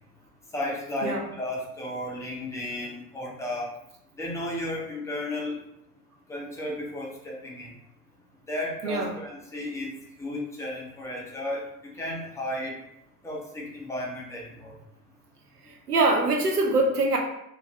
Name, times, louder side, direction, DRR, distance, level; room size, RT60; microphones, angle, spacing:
voice 1, 0.5-3.7 4.2-5.6 6.3-7.7 8.5-9.9 10.2-11.6 12.0-12.7 13.2-14.7, left 1 dB, 5° left, -3 dB, 0.6 m, -33 dB
voice 2, 8.8-9.1 15.7-17.2, right 2 dB, 85° right, 1 dB, 0.7 m, -24 dB
2.5 x 2.4 x 3.0 m, 0.79 s
figure-of-eight pair, 75°, 45 cm